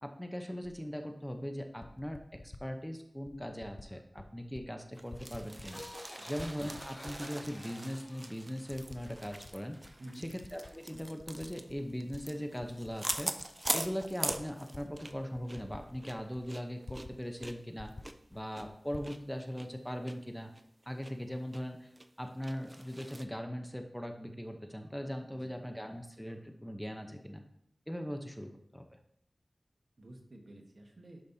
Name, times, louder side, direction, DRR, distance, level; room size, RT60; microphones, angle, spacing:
voice 1, 0.0-5.8 6.3-9.8 10.1-13.3 13.7-17.9 18.3-20.5 20.9-21.9 22.2-27.4 27.9-28.8, equal, 5° left, 5 dB, 0.8 m, -40 dB
Typing, 0.6-0.8 1.6-2.7 3.3-3.9 4.2-4.7 4.9-6.0 6.3-7.5 8.1-8.2 8.7-9.6 9.8-12.2 12.6-17.2 17.4-17.5 17.8-19.1, left 2 dB, 55° left, 0.5 m, -50 dB
sound 1, 5.0-15.2 15.5-15.6 16.0-19.2 19.6-19.7 20.1-20.2 20.6-21.1 21.5-21.6 22.0-23.3, right 1 dB, 25° right, 0.5 m, -42 dB
Laughter, 5.6-8.4, left 1 dB, 70° left, 2.2 m, -52 dB
voice 2, 10.0-10.3 25.3-25.6 30.0-31.2, right 1 dB, 60° right, 2 dB, 1.3 m, -51 dB
10.5 x 5.2 x 2.8 m, 0.73 s
wide cardioid pair, 50°, 0 cm